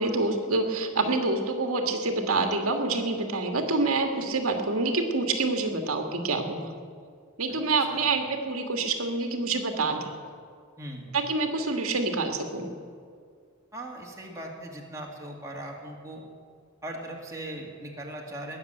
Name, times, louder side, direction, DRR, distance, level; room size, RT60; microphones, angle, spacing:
voice 1, 0.0-6.7 7.4-10.1 11.1-12.7, right 3 dB, 80° right, 5 dB, 1.6 m, -27 dB
voice 2, 7.8-8.1 10.8-11.1 13.7-16.2 16.8-18.6, right 1 dB, 15° right, -1 dB, 2.0 m, -39 dB
19.5 x 7.1 x 9.0 m, 2.1 s
head